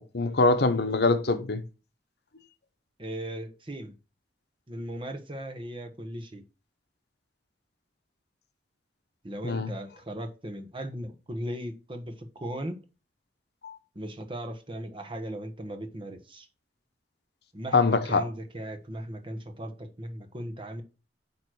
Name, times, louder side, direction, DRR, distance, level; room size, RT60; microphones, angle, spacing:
voice 1, 0.1-1.6 9.4-9.7 13.6-13.8 17.7-18.2, left 3 dB, 65° left, 0.9 m, -23 dB
voice 2, 3.0-3.9 4.7-6.4 9.2-12.8 13.9-16.5 17.5-20.8, right 1 dB, 30° right, 1.1 m, -37 dB
9.0 x 3.1 x 6.1 m
head